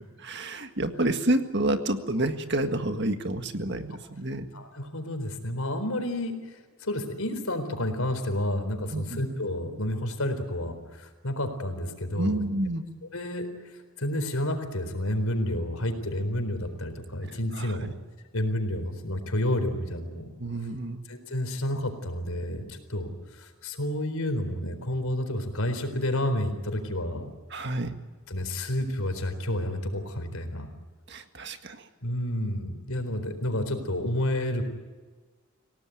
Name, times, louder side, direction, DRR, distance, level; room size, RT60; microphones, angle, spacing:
voice 1, 0.2-4.5 8.9-9.2 12.2-12.8 17.5-17.9 20.4-21.0 27.5-27.9 31.1-31.8, right 1 dB, 50° right, 7 dB, 1.8 m, -29 dB
voice 2, 4.5-12.4 13.1-13.5 14.0-17.9 18.3-20.3 21.1-27.3 28.3-30.7 32.0-34.7, left 1 dB, 75° left, 7 dB, 4.2 m, -30 dB
28.5 x 17.5 x 9.2 m, 1.3 s
head